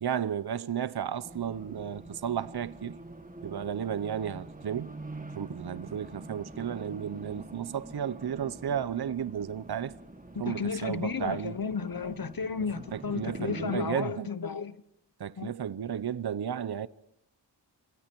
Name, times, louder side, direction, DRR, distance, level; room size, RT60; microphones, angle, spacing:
voice 1, 0.0-3.0 3.4-4.9 5.3-9.9 10.4-11.5 12.9-14.3 15.2-16.9, right 9 dB, 60° right, 0.7 m, -33 dB
Race car auto racing, 1.2-13.8, right 2 dB, 20° right, 1.8 m, -45 dB
voice 2, 10.5-14.8 15.4-15.5, left 5 dB, 50° left, 1.0 m, -33 dB
27.0 x 23.0 x 4.6 m
wide cardioid pair, 80°, 45 cm